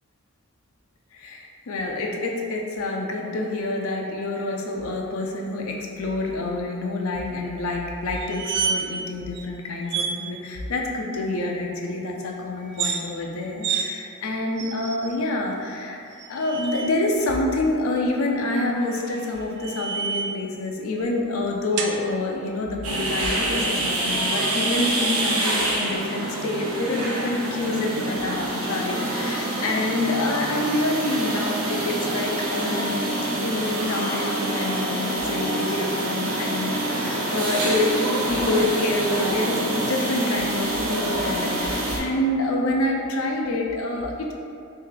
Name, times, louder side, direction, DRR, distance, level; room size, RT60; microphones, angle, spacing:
voice 1, 1.1-16.0 16.3-33.1 33.4-44.3, left 2 dB, 75° left, 0 dB, 0.5 m, -27 dB
sound 1, 8.1-9.1 9.3-9.5 9.9-10.2 12.6-13.0 13.6-13.9 14.6-15.2 16.1-16.9 18.8-20.4 21.8-22.0, right 6 dB, 55° right, 0.3 m, -29 dB
sound 2, 22.8-42.0, right 1 dB, 80° right, 0.7 m, -26 dB
3.0 x 2.7 x 3.8 m, 2.4 s
head